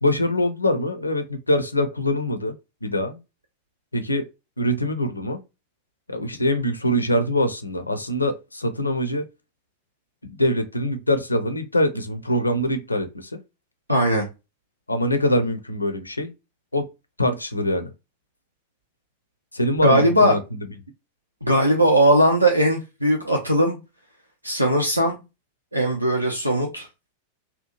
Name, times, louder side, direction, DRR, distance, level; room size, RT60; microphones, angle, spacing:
voice 1, 0.0-2.5 2.8-3.2 3.9-4.3 4.6-5.4 6.1-9.3 10.2-13.4 14.9-16.3 16.7-16.9 17.2-17.9 19.5-20.6, left 1 dB, 80° left, 0.5 m, -23 dB
voice 2, 13.9-14.3 19.8-20.3 21.4-23.8 24.4-25.2 25.7-26.9, right 1 dB, 85° right, 0.5 m, -19 dB
2.7 x 2.2 x 2.7 m
figure-of-eight pair, 90°, 0 cm